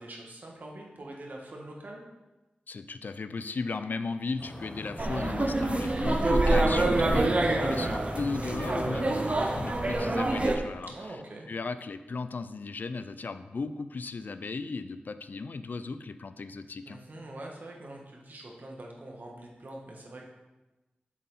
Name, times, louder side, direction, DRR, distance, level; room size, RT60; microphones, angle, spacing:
voice 1, 0.0-2.0 7.6-7.9 10.9-11.5 16.8-20.3, right 1 dB, 55° right, 0 dB, 1.3 m, -44 dB
voice 2, 2.7-10.9 11.5-17.0, left 4 dB, 60° left, 11 dB, 0.3 m, -36 dB
sound 1, 4.4-10.4, left 1 dB, 25° left, 0.8 m, -40 dB
sound 2, 5.0-10.6, right 2 dB, 35° right, 0.6 m, -26 dB
7.3 x 4.1 x 4.0 m, 1.1 s
wide cardioid pair, 75°, 4 cm